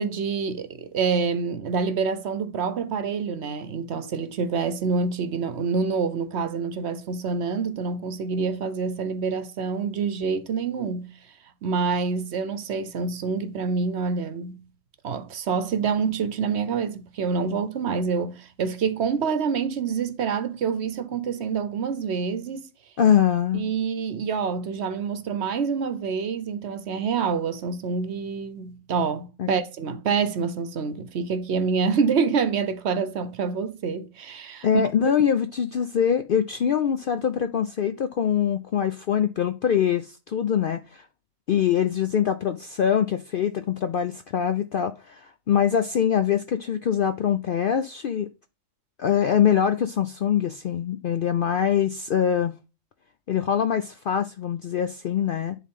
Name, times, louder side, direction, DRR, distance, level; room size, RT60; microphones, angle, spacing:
voice 1, 0.0-11.1 11.6-14.6 15.0-22.7 23.5-34.7, right 5 dB, 60° right, 1.0 m, -27 dB
voice 2, 23.0-23.6 29.4-29.5 34.6-41.0 41.5-48.3 49.0-52.5 53.3-55.6, left 8 dB, 65° left, 0.5 m, -23 dB
10.5 x 3.8 x 3.7 m
omnidirectional pair, 1.4 m